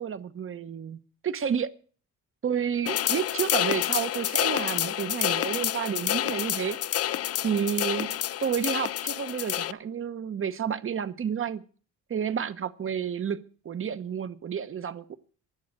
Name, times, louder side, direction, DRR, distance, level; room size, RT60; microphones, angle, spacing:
voice 1, 0.0-1.7 2.4-6.8 7.4-11.6 12.1-15.2, right 8 dB, 45° right, 1.0 m, -30 dB
sound 1, 2.9-9.7, left 12 dB, 55° left, 0.5 m, -28 dB
11.5 x 7.6 x 9.2 m
cardioid pair, 90°, 30 cm